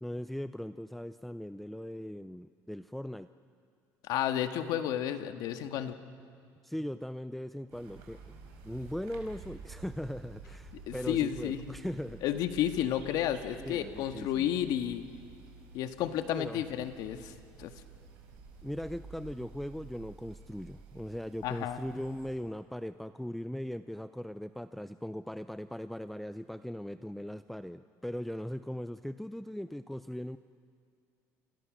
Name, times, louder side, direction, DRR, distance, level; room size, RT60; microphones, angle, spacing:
voice 1, 0.0-3.3 6.6-8.3 8.6-12.2 13.6-14.5 16.3-16.6 18.6-30.4, equal, ahead, 11 dB, 0.5 m, -39 dB
voice 2, 4.0-5.9 10.7-11.8 12.2-15.0 15.7-17.3 17.6-17.7 21.4-21.8, left 11 dB, 70° left, 7 dB, 1.7 m, -32 dB
sound 1, 7.7-22.3, right 4 dB, 90° right, 4.9 m, -51 dB
29.0 x 27.0 x 6.4 m, 2.3 s
cardioid pair, 115°, 7 cm